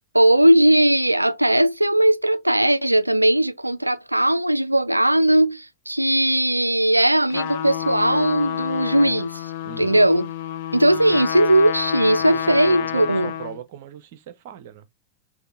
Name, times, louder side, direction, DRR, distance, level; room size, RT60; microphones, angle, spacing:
voice 1, 0.1-9.5 9.8-10.3 10.7-13.3, right 1 dB, 85° right, 0.3 m, -18 dB
Trumpet, 7.3-13.6, left 11 dB, 50° left, 0.8 m, -29 dB
voice 2, 9.6-10.0 11.1-11.3 12.1-14.9, right 9 dB, 50° right, 0.6 m, -39 dB
6.4 x 2.6 x 2.5 m
figure-of-eight pair, 90°, 0 cm